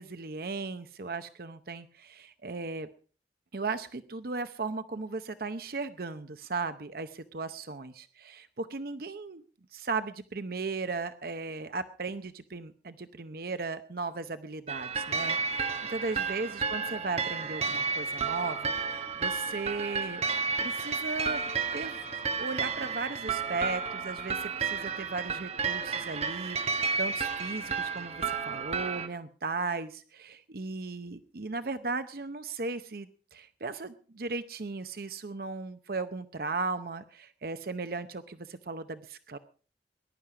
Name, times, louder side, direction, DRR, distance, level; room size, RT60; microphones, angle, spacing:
voice 1, 0.0-2.9 3.5-9.4 9.7-20.2 20.6-21.5 21.7-22.0 22.4-39.4, right 3 dB, 55° right, 10 dB, 0.7 m, -36 dB
sound 1, 14.7-29.1, right 5 dB, 35° right, 1.3 m, -32 dB
20.5 x 11.5 x 4.9 m, 0.40 s
head